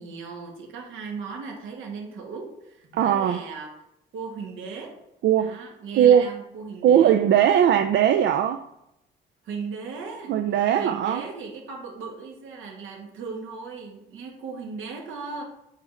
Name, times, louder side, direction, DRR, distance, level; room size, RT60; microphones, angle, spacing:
voice 1, 0.0-3.7 4.1-5.0 5.4-7.2 9.4-10.4 10.7-15.4, right 5 dB, 85° right, 1.8 m, -37 dB
voice 2, 2.9-3.4 5.2-5.5 5.9-6.3 6.8-8.6 10.3-11.2, right 9 dB, 65° right, 0.4 m, -19 dB
8.2 x 3.8 x 4.0 m
cardioid pair, 90°, 20 cm